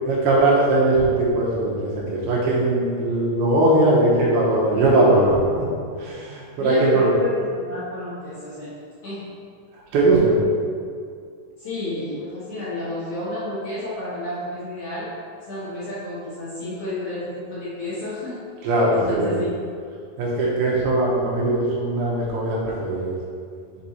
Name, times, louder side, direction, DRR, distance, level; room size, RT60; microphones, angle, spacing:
voice 1, 0.1-5.7 6.0-7.1 9.9-10.4 18.6-19.4 20.2-23.2, right 2 dB, 75° right, -5 dB, 2.6 m, -20 dB
voice 2, 6.6-8.8 9.0-9.3 11.6-15.1 15.5-19.5, left 2 dB, 60° left, -11 dB, 2.4 m, -30 dB
6.9 x 3.5 x 4.1 m, 2.2 s
omnidirectional pair, 4.9 m